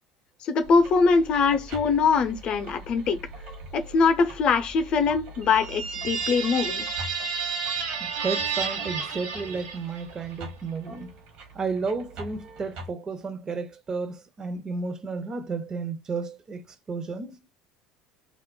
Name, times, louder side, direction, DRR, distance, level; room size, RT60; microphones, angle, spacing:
voice 1, 0.4-3.2 3.7-6.9, left 5 dB, 45° left, 0.6 m, -22 dB
sound 1, 0.6-12.9, right 1 dB, 60° right, 1.0 m, -43 dB
sound 2, 5.4-10.1, right 5 dB, 80° right, 1.0 m, -31 dB
voice 2, 8.0-11.2 11.5-17.4, right 4 dB, 30° right, 0.6 m, -32 dB
2.4 x 2.1 x 3.7 m
hypercardioid pair, 70°, 2 cm